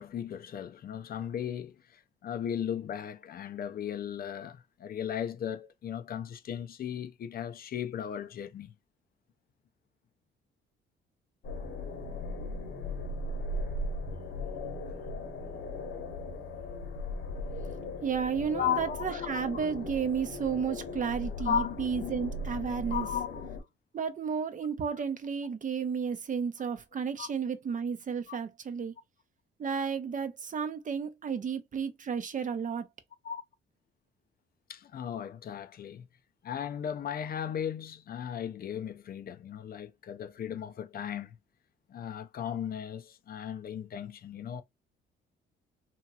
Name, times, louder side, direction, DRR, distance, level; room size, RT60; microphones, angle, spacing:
voice 1, 0.0-8.7 18.5-19.2 19.5-19.6 21.4-22.1 22.9-23.5 27.2-27.3 28.3-28.4 33.2-33.4 34.7-36.1 36.4-41.4 41.9-44.6, left 9 dB, 50° left, 0.5 m, -36 dB
sound 1, 11.4-23.6, left 2 dB, 70° left, 1.0 m, -38 dB
voice 2, 18.0-23.1 23.9-28.9 29.6-32.9, right 6 dB, 40° right, 0.6 m, -32 dB
2.9 x 2.8 x 2.3 m
cardioid pair, 75°, 20 cm